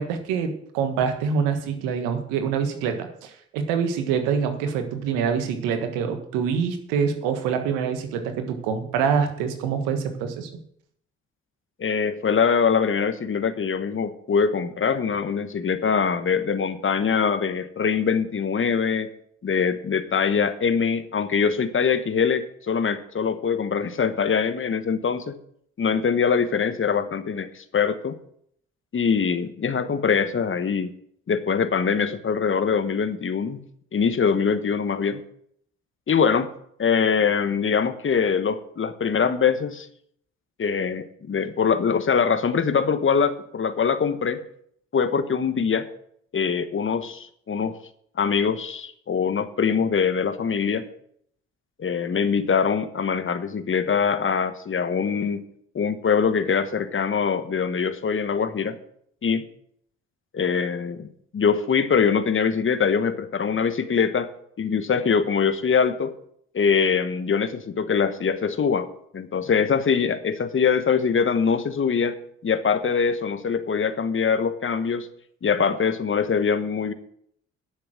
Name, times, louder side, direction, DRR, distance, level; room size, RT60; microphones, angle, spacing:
voice 1, 0.0-10.5, right 6 dB, 80° right, 7 dB, 1.5 m, -25 dB
voice 2, 11.8-19.1 19.4-25.4 25.8-28.2 28.9-30.9 31.3-33.6 33.9-35.2 36.1-36.5 36.8-39.9 40.6-44.4 44.9-45.9 46.3-47.7 48.2-50.9 51.8-55.4 55.7-58.8 59.2-59.4 60.3-64.3 64.6-66.1 66.5-68.9 69.1-72.2 72.4-75.1 75.4-76.9, left 6 dB, 40° left, 11 dB, 1.3 m, -23 dB
11.0 x 6.7 x 7.6 m, 0.69 s
hypercardioid pair, 50°, 32 cm